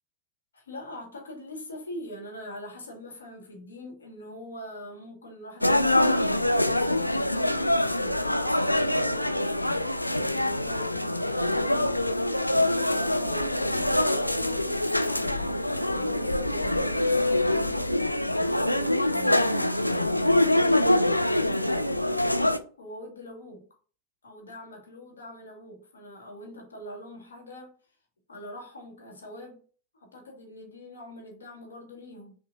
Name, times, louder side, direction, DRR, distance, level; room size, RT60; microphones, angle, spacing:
voice 1, 0.5-7.0 7.3-20.8 21.3-23.7 24.2-27.7 28.3-29.6 29.9-32.3, left 1 dB, 70° left, 1.3 m, -43 dB
sound 1, 5.6-22.6, left 1 dB, 85° left, 0.3 m, -25 dB
5.8 x 2.6 x 2.5 m
figure-of-eight pair, 90°, 0 cm